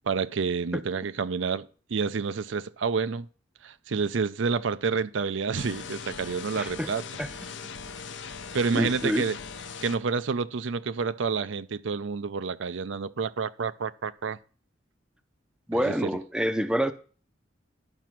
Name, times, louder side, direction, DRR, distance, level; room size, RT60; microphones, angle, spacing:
voice 1, 0.1-3.3 3.6-7.0 8.5-9.4 9.8-14.4 15.7-15.9, right 5 dB, 80° right, 0.5 m, -29 dB
sound 1, 5.6-10.0, left 5 dB, 70° left, 0.8 m, -40 dB
voice 2, 6.6-6.9 7.2-7.3 8.7-9.3 15.7-16.9, equal, 5° right, 0.6 m, -27 dB
11.0 x 6.1 x 5.9 m
head